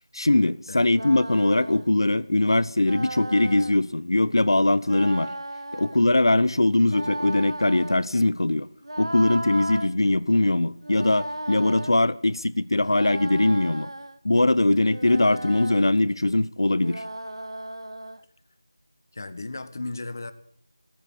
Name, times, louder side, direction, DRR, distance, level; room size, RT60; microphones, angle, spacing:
voice 1, 0.1-5.3 5.7-8.7 9.0-13.9 14.2-17.0, left 2 dB, 70° left, 0.9 m, -21 dB
sound 1, 0.8-1.9 2.8-3.8 4.8-6.0 6.8-8.1 8.8-9.9 10.8-11.9 12.8-14.2 14.8-15.9 16.8-18.2, right 1 dB, 85° right, 1.3 m, -36 dB
voice 2, 19.1-20.3, left 2 dB, 45° left, 1.5 m, -35 dB
18.0 x 9.4 x 8.1 m
figure-of-eight pair, 170°, 3 cm